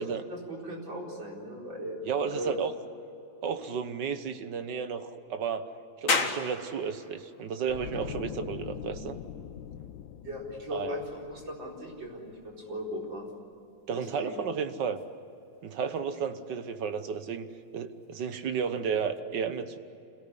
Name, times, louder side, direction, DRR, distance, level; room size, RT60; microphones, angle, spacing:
voice 1, 0.3-2.0 2.3-2.6 10.2-13.3 13.9-14.4, equal, 85° right, -2 dB, 5.1 m, -38 dB
voice 2, 2.1-2.7 3.4-5.7 6.0-9.2 10.7-11.0 13.9-15.0 15.6-19.8, right 6 dB, 70° right, 9 dB, 1.7 m, -33 dB
sound 1, 6.1-19.2, left 4 dB, 45° left, 2.0 m, -40 dB
sound 2, 7.7-12.8 13.1-13.3, left 9 dB, 80° left, 1.6 m, -43 dB
26.5 x 18.0 x 9.8 m, 3.0 s
omnidirectional pair, 2.0 m